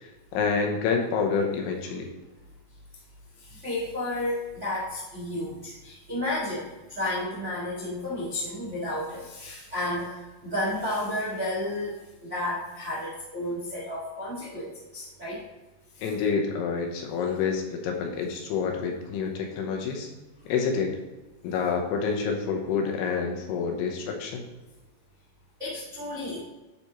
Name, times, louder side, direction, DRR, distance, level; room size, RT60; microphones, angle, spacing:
voice 1, 0.0-2.1 16.0-20.1 20.5-20.9 21.4-24.5, left 5 dB, 75° left, 2 dB, 2.7 m, -28 dB
voice 2, 3.4-15.4 15.9-16.0 25.6-26.4, left 1 dB, 65° right, -7 dB, 0.7 m, -32 dB
10.5 x 4.3 x 3.0 m, 1.1 s
omnidirectional pair, 5.0 m